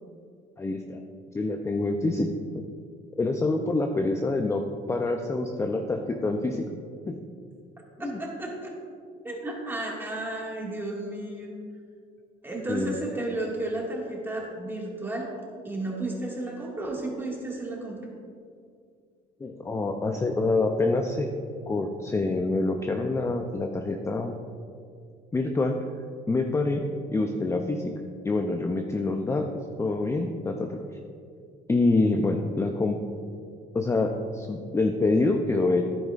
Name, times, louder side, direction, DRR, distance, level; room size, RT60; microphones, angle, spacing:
voice 1, 0.6-1.0 1.3-2.3 2.5-2.6 3.2-4.6 4.9-6.6 7.1-7.2 8.0-8.2 12.7-13.0 19.4-21.3 21.7-24.3 25.3-25.9 26.3-27.9 28.2-30.9 31.7-33.0 33.7-35.9, left 2 dB, 15° left, 4 dB, 0.5 m, -26 dB
voice 2, 8.0-8.7 9.2-11.5 12.4-15.3 15.6-18.1, right 2 dB, 15° right, -2 dB, 1.9 m, -33 dB
10.5 x 9.3 x 2.5 m, 2.3 s
cardioid pair, 110°, 17 cm